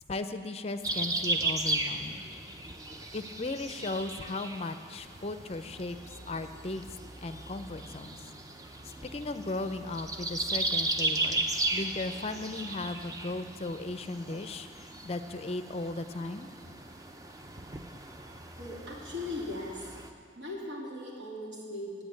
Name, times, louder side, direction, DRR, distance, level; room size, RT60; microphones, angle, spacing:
voice 1, 0.1-2.3 3.1-6.9 7.2-8.3 8.8-16.5, left 2 dB, 35° left, 10 dB, 0.4 m, -37 dB
sound 1, 0.8-20.1, right 2 dB, 20° right, 0.5 m, -36 dB
voice 2, 18.6-20.0 20.3-22.0, left 2 dB, 90° right, -4 dB, 2.8 m, -39 dB
9.0 x 8.5 x 9.0 m, 2.1 s
head